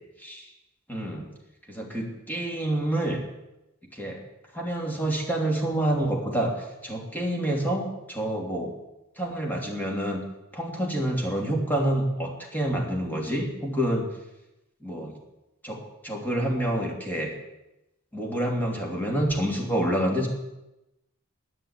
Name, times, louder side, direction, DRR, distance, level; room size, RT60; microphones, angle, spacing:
voice 1, 0.9-1.3 1.7-3.2 3.9-4.2 4.5-8.7 9.2-10.2 10.5-14.1 14.8-15.2 15.6-17.3 18.1-20.3, right 1 dB, 10° left, -1 dB, 2.9 m, -28 dB
10.0 x 10.0 x 8.9 m, 0.94 s
head